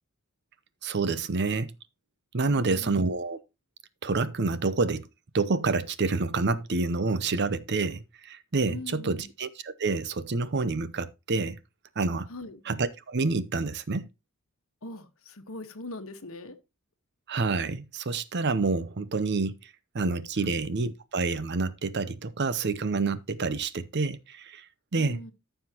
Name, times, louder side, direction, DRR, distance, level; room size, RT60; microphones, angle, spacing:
voice 1, 0.8-1.7 2.3-3.4 4.0-5.1 5.3-11.6 12.0-12.3 12.7-14.1 17.3-24.7 24.9-25.2, right 3 dB, 50° right, 0.7 m, -28 dB
voice 2, 2.5-3.0 8.7-9.3 12.3-12.6 14.8-16.6 20.4-20.6 24.9-25.3, left 2 dB, 65° left, 1.3 m, -41 dB
14.0 x 5.7 x 2.9 m
head